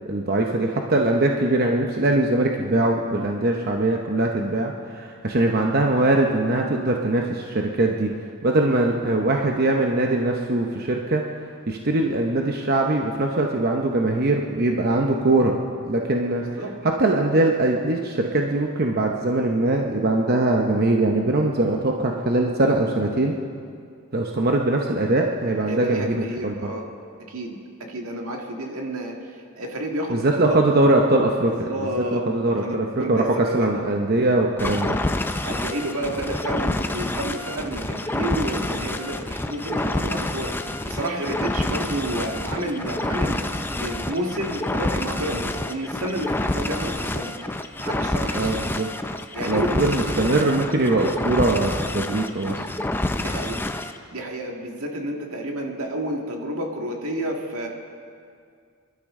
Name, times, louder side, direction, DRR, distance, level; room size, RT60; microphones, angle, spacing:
voice 1, 0.1-8.1 8.4-11.2 11.7-15.6 15.8-23.3 24.1-26.7 30.1-35.0 48.3-48.9 49.5-52.6, right 2 dB, 45° right, 1 dB, 0.8 m, -22 dB
voice 2, 25.7-26.8 27.3-27.6 27.9-29.1 29.6-30.6 31.7-33.7 35.4-40.5 40.8-47.3 47.8-48.6 49.3-50.4 53.2-53.6 54.1-57.7, right 1 dB, 75° right, 1 dB, 1.9 m, -30 dB
sound 1, 34.6-54.0, left 1 dB, 10° left, 0.4 m, -28 dB
26.0 x 12.0 x 3.7 m, 2.3 s
head